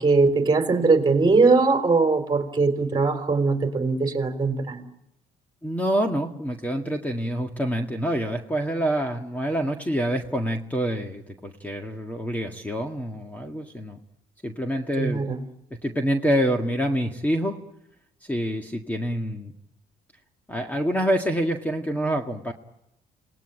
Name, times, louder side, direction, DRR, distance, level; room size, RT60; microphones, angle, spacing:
voice 1, 0.0-4.8 15.0-15.4, right 4 dB, 25° right, 6 dB, 3.9 m, -21 dB
voice 2, 5.6-14.0 14.4-15.3 15.7-17.6 18.2-19.5 20.5-22.5, equal, 10° left, 4 dB, 1.9 m, -26 dB
29.0 x 19.5 x 8.9 m, 0.86 s
cardioid pair, 110°, 17 cm